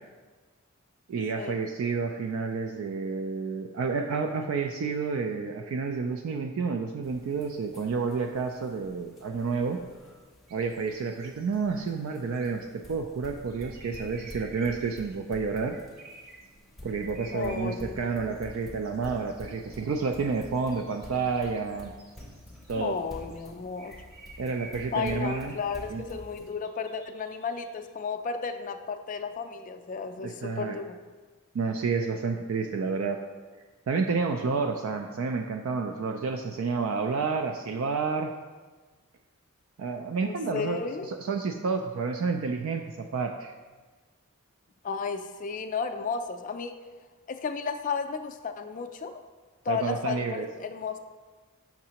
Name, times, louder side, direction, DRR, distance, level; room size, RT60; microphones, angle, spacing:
voice 1, 1.1-9.8 10.5-15.8 16.8-21.9 22.7-23.0 24.4-25.5 25.9-26.0 30.2-30.8 31.5-33.2 33.9-38.3 39.8-43.5 49.7-50.5, right 4 dB, 70° right, 5 dB, 0.3 m, -30 dB
sound 1, 7.0-26.5, left 1 dB, ahead, 0.6 m, -48 dB
sound 2, 10.5-11.8 12.1-12.5 13.5-15.2 15.7-16.5 16.9-23.4 23.8-27.7, right 3 dB, 45° right, 0.9 m, -50 dB
voice 2, 17.3-18.4 22.8-24.0 24.9-31.0 40.2-41.1 44.8-46.7 47.3-49.1 49.6-51.0, left 5 dB, 35° left, 7 dB, 0.3 m, -33 dB
6.3 x 5.8 x 2.9 m, 1.4 s
head